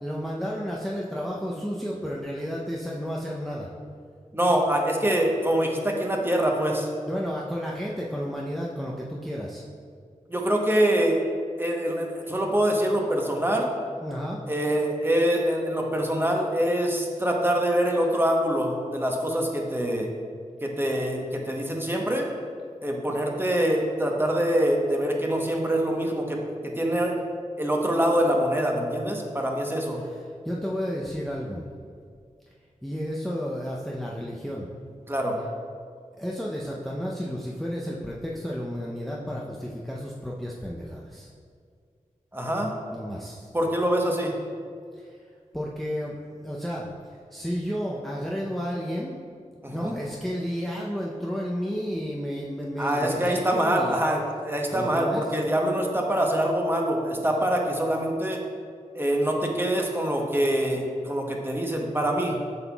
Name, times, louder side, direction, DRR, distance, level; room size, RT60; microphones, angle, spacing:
voice 1, 0.0-3.7 5.0-5.1 7.1-9.6 14.0-14.4 30.0-31.7 32.8-34.7 36.2-41.3 42.9-43.5 44.9-45.2 45.5-49.2 49.7-54.0 54.7-55.2, equal, ahead, -4 dB, 0.6 m, -32 dB
voice 2, 4.3-6.9 10.3-11.2 11.6-13.7 14.5-20.1 20.6-22.3 22.8-27.2 27.6-30.0 35.1-35.4 42.3-42.7 43.5-44.3 49.6-49.9 52.8-58.4 58.9-62.4, right 1 dB, 15° right, 0 dB, 1.0 m, -25 dB
7.8 x 5.6 x 2.3 m, 2.2 s
cardioid pair, 40°, 14 cm